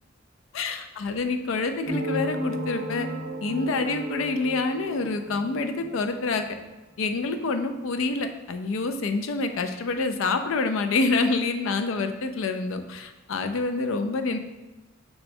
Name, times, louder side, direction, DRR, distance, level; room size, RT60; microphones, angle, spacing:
voice 1, 0.5-3.1 3.4-6.5 7.0-14.4, left 3 dB, 75° left, 8 dB, 0.4 m, -27 dB
sound 1, 1.9-6.8, equal, 50° right, 0.5 m, -34 dB
5.6 x 2.2 x 4.2 m, 1.1 s
head